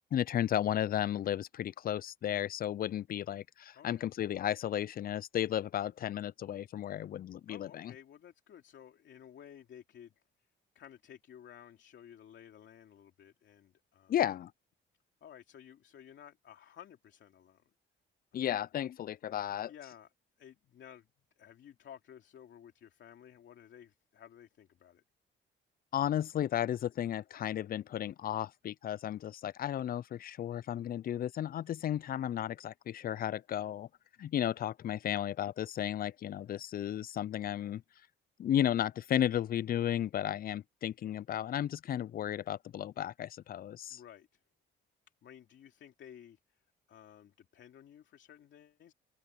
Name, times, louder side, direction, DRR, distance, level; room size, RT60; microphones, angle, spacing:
voice 1, 0.1-7.9 14.1-14.5 18.3-19.7 25.9-33.9 34.2-37.8 38.4-44.0, left 11 dB, 50° left, 0.4 m, -34 dB
voice 2, 3.7-4.1 7.5-10.1 10.7-14.1 15.2-17.7 18.3-18.6 19.7-20.1 20.4-21.1 21.4-25.0 43.9-44.4 45.2-46.6 46.9-48.9, left 9 dB, 65° left, 2.9 m, -54 dB
cardioid pair, 90°, 20 cm